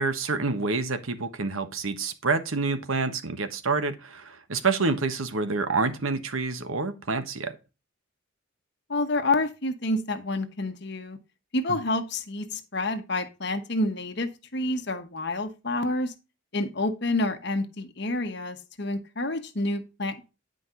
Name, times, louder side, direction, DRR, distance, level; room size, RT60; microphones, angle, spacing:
voice 1, 0.0-7.5 11.7-11.8, right 4 dB, 80° right, 1.2 m, -27 dB
voice 2, 8.9-11.2 11.5-16.1 16.5-20.3, left 2 dB, 55° left, 1.2 m, -28 dB
9.9 x 5.2 x 3.8 m
head